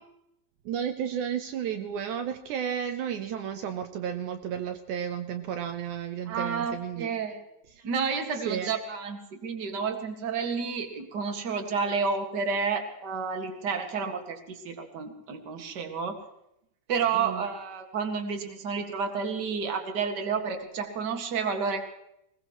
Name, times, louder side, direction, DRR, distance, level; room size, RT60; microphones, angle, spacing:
voice 1, 0.7-7.1 7.8-7.9 8.5-8.7 17.1-17.5, right 8 dB, 90° right, 8 dB, 1.7 m, -33 dB
voice 2, 6.3-7.4 7.8-16.2 16.9-21.8, right 5 dB, 40° right, 5 dB, 1.5 m, -30 dB
21.0 x 20.0 x 3.1 m, 0.82 s
omnidirectional pair, 4.6 m